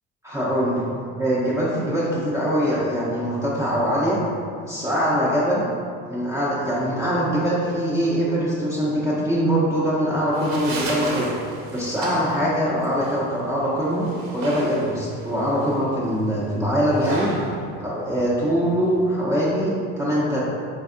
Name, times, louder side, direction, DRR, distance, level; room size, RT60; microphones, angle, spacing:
voice 1, 0.2-0.8 1.2-4.2 4.6-5.7 6.1-11.3 11.7-17.3 17.8-20.4, equal, 10° right, -8 dB, 0.5 m, -23 dB
sound 1, 10.1-19.1, right 2 dB, 50° right, 0.7 m, -35 dB
3.4 x 3.3 x 2.5 m, 2.3 s
supercardioid pair, 95°, 30 cm